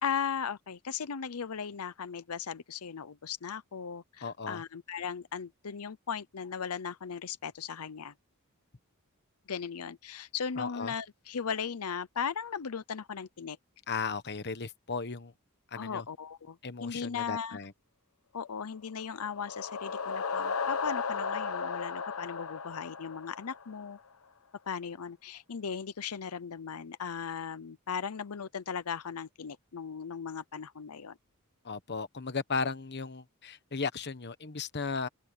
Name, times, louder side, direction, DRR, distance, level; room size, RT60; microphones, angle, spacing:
voice 1, 0.0-8.1 9.5-13.6 15.8-16.6 16.8-17.6 18.3-24.0 24.7-31.1, left 6 dB, 90° left, 0.7 m, -37 dB
voice 2, 4.2-4.6 10.5-10.9 13.9-15.3 15.7-16.0 16.6-17.7 31.6-35.1, left 4 dB, 50° left, 1.2 m, -36 dB
sound 1, 19.0-23.9, left 5 dB, 70° left, 1.1 m, -35 dB
open air
head